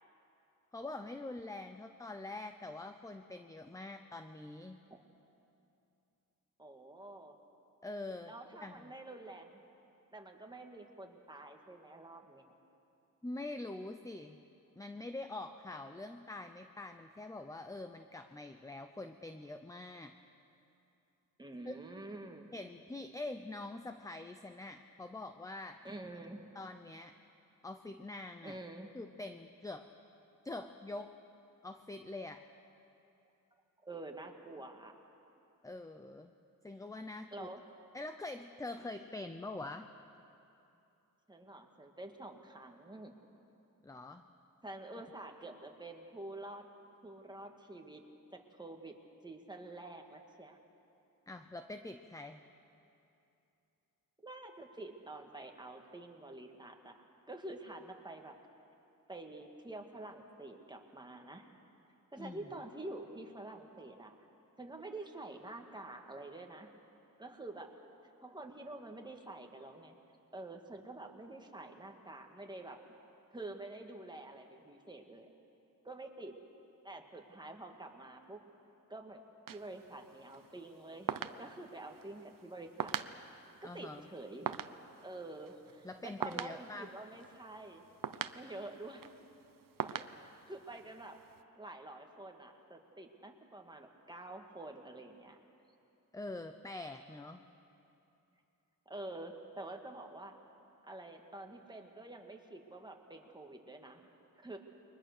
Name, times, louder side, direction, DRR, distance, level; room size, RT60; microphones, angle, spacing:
voice 1, 0.7-4.8 7.8-8.3 8.6-8.8 13.2-14.4 14.8-20.1 21.6-21.7 22.5-25.8 26.5-27.1 27.6-28.6 28.9-29.9 30.4-31.2 31.6-32.4 35.6-36.3 36.6-37.5 37.9-39.9 43.8-44.2 51.3-52.4 62.2-62.4 83.6-84.1 85.8-86.9 96.1-97.4, left 2 dB, 10° left, 8 dB, 0.6 m, -44 dB
voice 2, 6.6-7.4 8.3-9.6 10.1-12.5 21.4-22.5 25.8-26.4 28.4-28.9 33.8-34.9 37.3-37.6 41.3-43.1 44.6-46.6 47.0-48.9 49.2-50.6 54.2-57.0 57.3-58.3 59.1-61.5 62.1-64.3 64.6-66.7 67.2-67.7 68.2-69.9 70.3-72.8 73.3-75.3 75.8-76.3 76.8-78.4 78.9-79.2 79.5-82.9 83.7-84.5 85.0-87.8 88.3-89.0 89.9-91.2 91.6-95.4 98.9-100.4 100.8-104.0 104.4-104.6, right 2 dB, 15° right, 2 dB, 1.8 m, -48 dB
sound 1, 79.5-91.4, right 8 dB, 70° right, 0.8 m, -44 dB
29.5 x 22.5 x 6.7 m, 2.8 s
wide cardioid pair, 155°, 34 cm